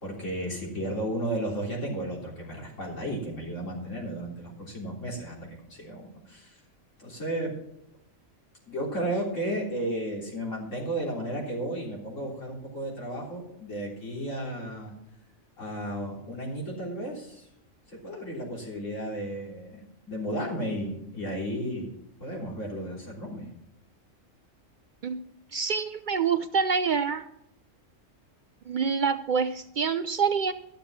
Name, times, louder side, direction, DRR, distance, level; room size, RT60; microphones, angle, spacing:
voice 1, 0.0-5.4 5.7-6.6 7.0-7.5 8.7-14.9 15.6-17.5 17.9-21.9 22.2-23.5, right 1 dB, 70° left, -2 dB, 3.9 m, -33 dB
voice 2, 25.5-27.2 28.7-30.5, right 6 dB, 60° right, 10 dB, 0.5 m, -26 dB
13.0 x 6.8 x 6.0 m, 0.79 s
omnidirectional pair, 1.4 m